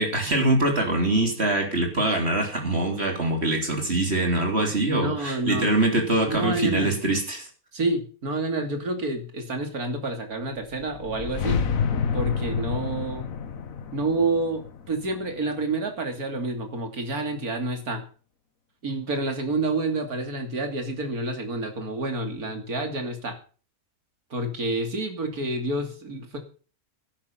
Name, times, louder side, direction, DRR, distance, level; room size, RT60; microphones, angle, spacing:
voice 1, 0.0-7.5, right 2 dB, 45° right, 2 dB, 3.8 m, -23 dB
voice 2, 4.9-5.7 6.3-6.9 7.7-11.6 12.1-13.3 13.9-18.0 18.8-23.4 24.3-26.4, right 2 dB, 75° right, 5 dB, 3.2 m, -28 dB
sound 1, 10.7-15.8, left 6 dB, 65° left, 1.5 m, -29 dB
13.5 x 11.0 x 5.8 m, 0.38 s
omnidirectional pair, 1.6 m